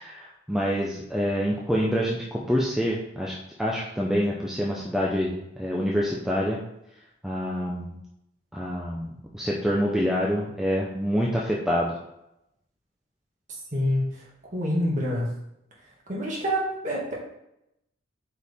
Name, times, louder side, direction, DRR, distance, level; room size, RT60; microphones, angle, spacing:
voice 1, 0.0-6.6 7.2-7.9 8.5-11.9, equal, ahead, -4 dB, 0.7 m, -26 dB
voice 2, 13.7-14.0 14.5-15.3 16.1-17.1, equal, 35° right, -4 dB, 2.1 m, -26 dB
8.2 x 4.7 x 3.6 m, 0.82 s
head